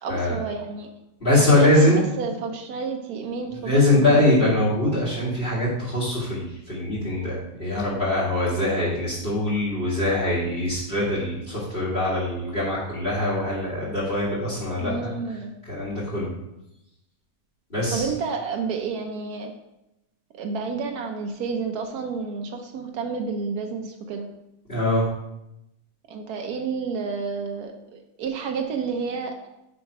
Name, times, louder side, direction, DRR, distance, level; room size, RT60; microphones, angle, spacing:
voice 1, 0.0-0.9 1.5-4.3 14.8-15.5 17.9-19.5 20.3-24.3 26.1-29.4, right 5 dB, 85° right, 3 dB, 1.3 m, -30 dB
voice 2, 1.2-2.0 3.5-15.4 15.6-16.3 17.7-18.1 24.7-25.1, left 1 dB, 35° left, -10 dB, 2.6 m, -23 dB
6.2 x 5.1 x 4.7 m, 0.88 s
omnidirectional pair, 1.6 m